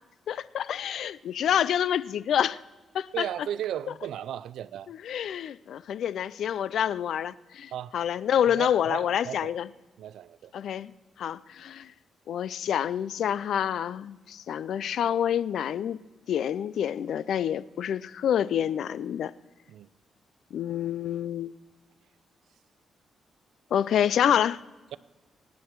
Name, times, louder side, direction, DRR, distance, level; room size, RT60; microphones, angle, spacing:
voice 1, 0.3-2.6 2.9-3.3 4.9-9.7 10.5-10.9 11.2-11.9 12.3-16.0 16.3-19.3 20.5-21.5 23.7-24.6, left 9 dB, 75° left, 0.4 m, -27 dB
voice 2, 3.1-4.9 7.7-8.0 8.5-9.5 10.0-10.5 19.7-19.9, right 11 dB, 90° right, 0.4 m, -35 dB
23.5 x 9.4 x 4.6 m
cardioid pair, 115°, 0 cm